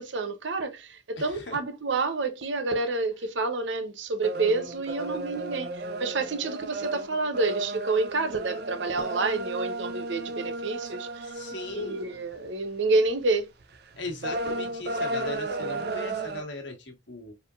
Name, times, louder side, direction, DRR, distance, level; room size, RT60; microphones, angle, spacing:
voice 1, 0.0-11.3 11.8-13.5, right 3 dB, 75° right, 0.9 m, -28 dB
voice 2, 1.2-1.6 11.2-12.0 14.0-17.3, left 2 dB, 70° left, 1.6 m, -38 dB
sound 1, 4.2-12.5 12.9-13.2 13.6-16.4, right 2 dB, 55° right, 0.5 m, -34 dB
4.3 x 3.6 x 2.5 m
head